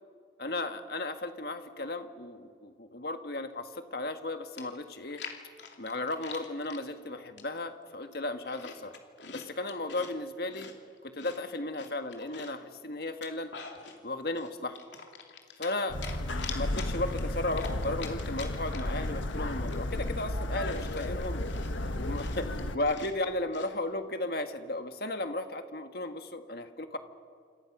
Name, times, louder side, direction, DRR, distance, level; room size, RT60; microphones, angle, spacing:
voice 1, 0.4-5.2 5.8-8.9 9.3-10.7 11.0-13.5 14.0-14.8 15.6-16.0 16.5-21.4 22.0-27.0, left 2 dB, 55° left, 7 dB, 1.7 m, -35 dB
Chewing mastication, 4.2-4.3 4.6-6.8 7.4-7.7 8.1-10.1 10.5-12.6 13.1-14.0 14.4-15.8 16.0-19.0 19.3-19.4 19.7-23.7, left 6 dB, 70° left, 2.8 m, -45 dB
sound 1, 15.9-22.8, left 1 dB, 85° left, 1.5 m, -33 dB
28.0 x 27.0 x 6.1 m, 2.2 s
head